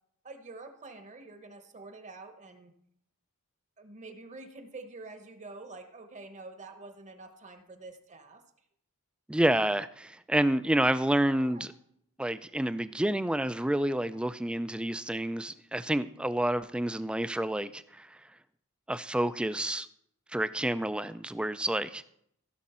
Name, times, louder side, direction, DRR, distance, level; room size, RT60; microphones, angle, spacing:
voice 1, 0.2-2.7 3.8-8.4 11.4-11.6, right 3 dB, 35° right, 7 dB, 1.0 m, -47 dB
voice 2, 9.3-11.7 12.2-18.2 18.9-19.9 20.3-22.1, right 1 dB, 5° right, 14 dB, 0.3 m, -29 dB
15.5 x 6.3 x 4.3 m, 0.71 s
head